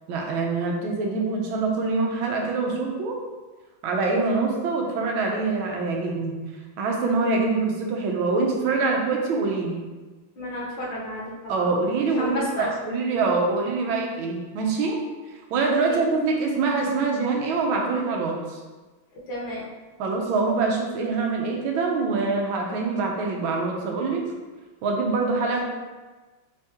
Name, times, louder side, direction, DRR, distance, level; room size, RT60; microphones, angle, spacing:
voice 1, 0.1-3.2 3.8-6.4 6.8-9.8 11.5-15.0 15.5-18.6 20.0-24.2 24.8-25.6, right 3 dB, 85° right, 0 dB, 1.5 m, -24 dB
voice 2, 10.4-11.7 12.2-12.7 15.9-16.0 19.3-19.6, left 1 dB, 70° left, -4 dB, 1.6 m, -32 dB
4.5 x 3.5 x 2.8 m, 1.3 s
omnidirectional pair, 2.2 m